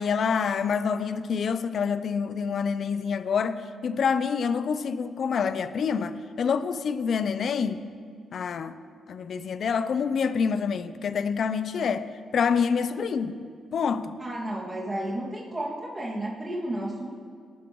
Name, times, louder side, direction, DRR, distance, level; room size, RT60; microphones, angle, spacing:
voice 1, 0.0-7.8 8.3-8.8 9.1-13.3 13.7-14.1, left 6 dB, 65° left, 13 dB, 0.5 m, -27 dB
voice 2, 14.2-17.1, right 1 dB, 30° right, -5 dB, 2.2 m, -32 dB
18.5 x 11.0 x 3.1 m, 2.2 s
supercardioid pair, 60°, 0 cm